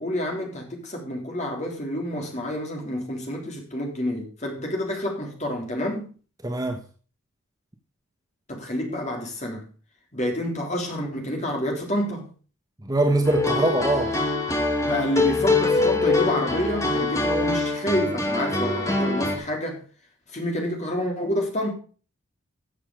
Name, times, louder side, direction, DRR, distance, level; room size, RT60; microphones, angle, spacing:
voice 1, 0.0-6.1 8.5-9.7 10.1-12.3 14.8-19.8 20.3-21.7, left 1 dB, 35° left, 3.7 m, -28 dB
voice 2, 6.4-6.8 12.8-14.2, right 2 dB, 15° right, 1.3 m, -23 dB
sound 1, 13.2-19.4, left 3 dB, 15° left, 2.0 m, -24 dB
14.0 x 7.4 x 4.8 m
head